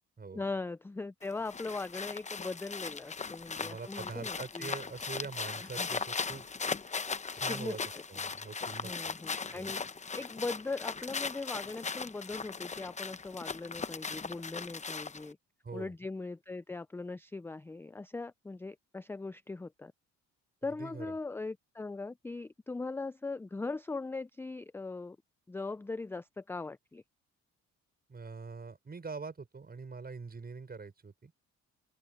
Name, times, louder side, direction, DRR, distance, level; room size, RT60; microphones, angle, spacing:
voice 1, 0.3-4.7 5.6-5.9 7.5-8.0 8.8-9.8 10.1-15.4 15.7-19.9 20.6-25.2 25.5-27.0, left 3 dB, 10° left, 0.3 m, -40 dB
sound 1, 1.2-15.3, left 5 dB, 25° left, 0.8 m, -38 dB
voice 2, 3.6-6.5 7.3-7.8 8.1-9.2 9.5-9.8 15.6-15.9 20.6-21.1 28.1-31.3, right 4 dB, 30° right, 5.9 m, -44 dB
open air
cardioid pair, 90°, 30 cm